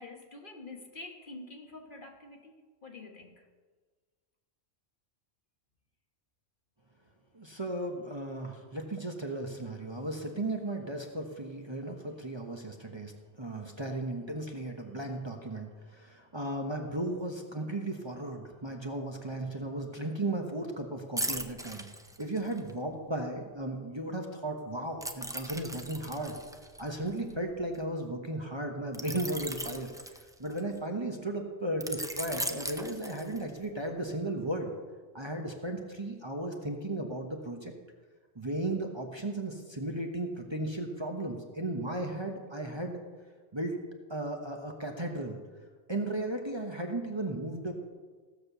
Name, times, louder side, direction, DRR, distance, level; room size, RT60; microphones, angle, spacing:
voice 1, 0.0-2.5 2.8-3.5, left 2 dB, 45° left, 3 dB, 1.4 m, -47 dB
voice 2, 7.3-21.9 22.2-26.4 26.8-34.7 35.1-37.7 38.3-43.0 43.5-43.8 44.1-45.4 45.9-47.9, right 1 dB, 25° right, 2 dB, 1.1 m, -35 dB
sound 1, 21.2-22.7 25.0-27.8 28.9-30.8 31.8-33.6 34.1-34.3, right 1 dB, 5° right, 0.3 m, -38 dB
15.5 x 6.6 x 6.8 m, 1.4 s
omnidirectional pair, 1.2 m